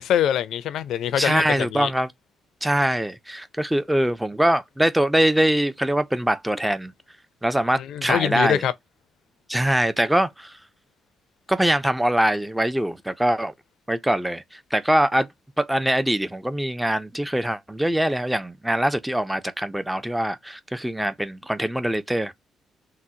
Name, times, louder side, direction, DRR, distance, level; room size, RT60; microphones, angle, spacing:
voice 1, 0.0-1.9 7.8-8.7, left 10 dB, 75° left, 0.4 m, -24 dB
voice 2, 1.2-2.1 2.6-6.9 7.4-8.6 9.5-10.5 11.5-13.5 13.9-14.4 14.7-15.3 15.6-22.3, right 1 dB, 5° right, 0.4 m, -23 dB
3.8 x 2.0 x 2.7 m
cardioid pair, 90°, 0 cm